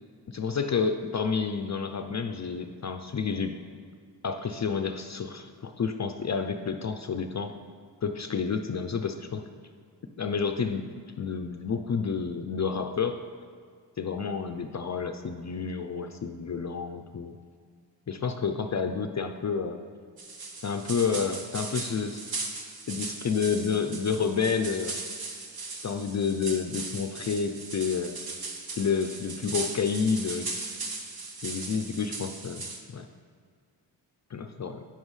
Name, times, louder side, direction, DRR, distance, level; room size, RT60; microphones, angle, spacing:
voice 1, 0.3-3.6 4.2-7.5 8.0-9.4 10.2-10.8 11.2-13.2 14.0-17.4 18.1-19.8 20.6-22.2 22.9-25.0 25.8-28.2 28.8-30.6 31.4-32.6 32.9-33.1 34.3-34.9, left 5 dB, 40° left, 7 dB, 0.5 m, -29 dB
sound 1, 20.2-32.8, right 3 dB, 55° right, 1.1 m, -38 dB
9.1 x 7.2 x 3.2 m, 2.1 s
cardioid pair, 45°, 45 cm